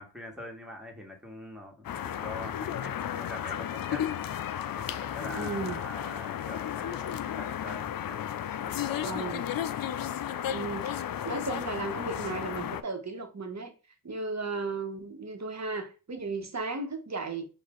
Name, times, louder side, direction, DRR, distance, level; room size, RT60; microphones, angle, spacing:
voice 1, 0.0-4.1 4.7-8.3 8.6-9.3, left 1 dB, ahead, 1.8 m, -43 dB
sound 1, 1.8-12.8, left 10 dB, 45° left, 0.5 m, -34 dB
voice 2, 5.3-5.8 9.0-9.4 10.5-13.7 14.0-17.5, right 3 dB, 35° right, 1.3 m, -35 dB
4.6 x 2.7 x 3.8 m
cardioid pair, 50°, 49 cm